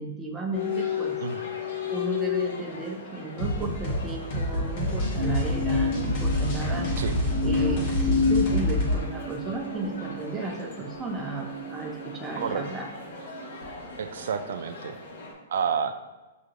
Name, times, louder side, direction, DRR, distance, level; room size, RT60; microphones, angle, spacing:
voice 1, 0.0-1.1 1.9-6.9 7.4-12.9, right 2 dB, 10° right, -1 dB, 0.5 m, -34 dB
sound 1, 0.5-15.3, left 7 dB, 75° left, 1.1 m, -37 dB
sound 2, 3.4-9.0, left 1 dB, 45° left, 1.3 m, -27 dB
sound 3, 5.2-12.6 13.2-13.7, left 3 dB, 55° right, 1.3 m, -31 dB
voice 2, 14.0-14.9 15.5-16.0, right 7 dB, 70° right, 8 dB, 0.3 m, -29 dB
6.2 x 2.8 x 2.5 m, 1.2 s
hypercardioid pair, 150°, 0 cm